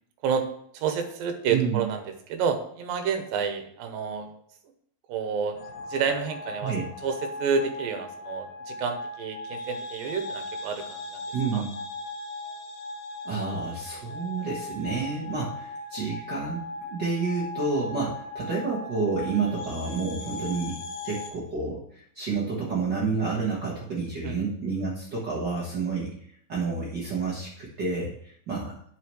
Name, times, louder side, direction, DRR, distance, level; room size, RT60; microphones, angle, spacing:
voice 1, 0.7-2.0 2.3-4.3 5.1-5.6 5.9-6.7 7.0-11.2 11.5-11.6 24.2-24.4, right 6 dB, 80° right, 6 dB, 2.6 m, -29 dB
voice 2, 1.5-1.9 6.6-6.8 11.3-11.8 13.2-26.1 26.5-28.7, right 4 dB, 55° right, -5 dB, 1.1 m, -29 dB
sound 1, 5.5-21.3, left 2 dB, 70° left, 1.8 m, -38 dB
9.4 x 6.8 x 3.2 m, 0.67 s
omnidirectional pair, 4.1 m